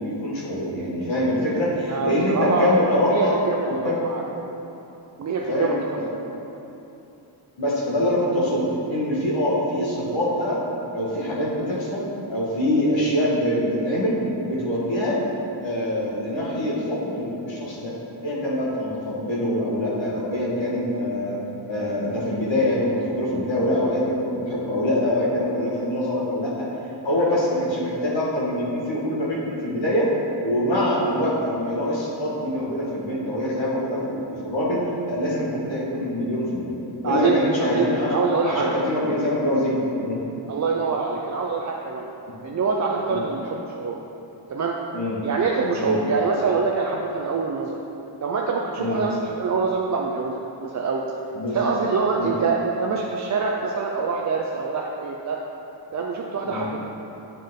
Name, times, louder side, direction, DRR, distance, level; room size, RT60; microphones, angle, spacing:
voice 1, 0.0-3.3 3.7-4.0 5.5-6.1 7.6-10.6 10.9-14.1 14.4-15.2 15.6-17.9 18.2-21.4 21.7-26.7 27.0-30.1 30.4-36.7 37.0-38.1 38.4-40.2 43.1-43.2 44.9-45.2 45.8-46.0 48.8-49.0 51.3-51.7 52.2-52.3 56.4-56.7, left 1 dB, 70° left, -6 dB, 1.6 m, -24 dB
voice 2, 1.9-2.8 3.1-3.7 4.0-4.2 5.2-5.8 27.3-27.4 37.0-38.8 40.5-42.1 42.4-44.0 44.5-44.7 45.2-47.8 48.2-51.0 51.5-55.4 55.9-56.9, right 4 dB, 40° right, -1 dB, 0.4 m, -25 dB
7.6 x 5.3 x 3.7 m, 2.9 s
wide cardioid pair, 130°, 48 cm